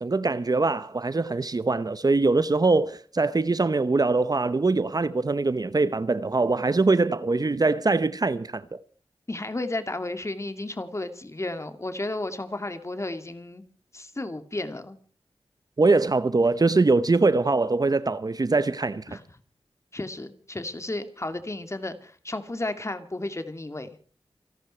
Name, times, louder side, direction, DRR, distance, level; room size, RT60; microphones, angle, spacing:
voice 1, 0.0-8.8 15.8-19.0, right 3 dB, 45° right, 0.9 m, -23 dB
voice 2, 9.3-13.6 13.9-15.0 19.1-19.2 19.9-23.9, left 2 dB, 30° left, 2.5 m, -33 dB
28.0 x 11.5 x 4.4 m
wide cardioid pair, 65°, 9 cm